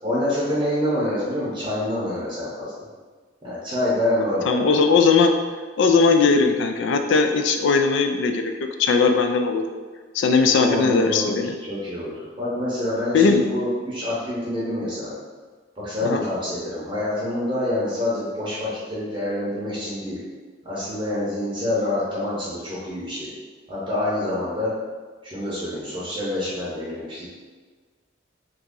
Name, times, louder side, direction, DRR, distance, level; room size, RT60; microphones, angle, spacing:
voice 1, 0.0-2.8 3.4-4.8 10.6-11.4 11.7-15.1 15.8-20.2 20.6-23.3 23.7-24.7 25.2-27.3, left 1 dB, 25° right, -8 dB, 0.7 m, -26 dB
voice 2, 4.2-5.3 5.8-8.5 8.8-9.6 10.1-11.5 13.1-13.4 16.0-16.2, left 4 dB, 65° left, 6 dB, 0.3 m, -19 dB
2.9 x 2.6 x 3.6 m, 1.4 s
head